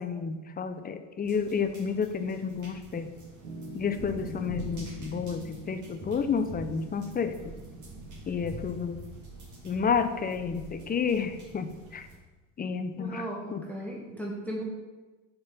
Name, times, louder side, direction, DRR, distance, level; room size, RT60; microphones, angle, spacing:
voice 1, 0.0-3.1 3.7-7.5 8.3-9.0 9.6-12.1 12.6-13.6, left 6 dB, 20° left, 8 dB, 0.5 m, -31 dB
sound 1, 1.2-12.1, right 1 dB, 45° right, 2.2 m, -45 dB
Piano, 3.4-8.5, right 1 dB, 80° right, 2.2 m, -46 dB
voice 2, 13.0-14.6, right 1 dB, 5° left, -3 dB, 1.2 m, -36 dB
5.1 x 4.4 x 5.4 m, 1.2 s
hypercardioid pair, 75°, 41 cm